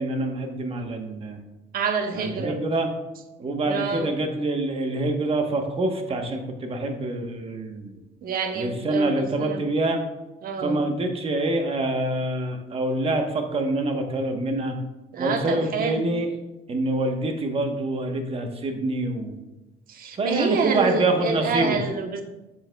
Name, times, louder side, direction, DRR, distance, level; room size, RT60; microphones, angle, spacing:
voice 1, 0.0-1.4 2.1-2.9 3.4-8.0 8.5-10.0 10.6-14.8 15.2-16.3 16.7-19.4 20.1-21.8, right 2 dB, 35° right, 4 dB, 1.1 m, -26 dB
voice 2, 1.7-2.6 3.6-4.1 8.2-9.6 10.4-10.8 15.1-16.0 19.9-22.2, right 4 dB, 60° right, 5 dB, 1.0 m, -27 dB
7.5 x 7.5 x 2.3 m, 1.0 s
cardioid pair, 110°, 17 cm